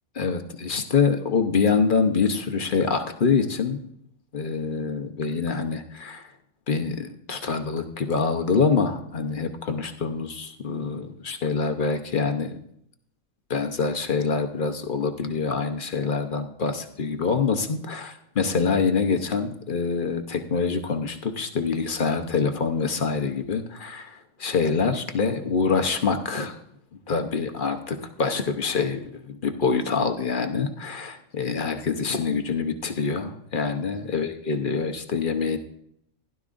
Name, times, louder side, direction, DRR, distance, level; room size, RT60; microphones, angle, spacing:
voice 1, 0.2-3.9 4.3-6.3 6.7-12.6 13.5-26.6 27.1-35.6, left 5 dB, 45° left, 7 dB, 0.9 m, -25 dB
16.0 x 11.5 x 2.5 m, 0.72 s
omnidirectional pair, 1.5 m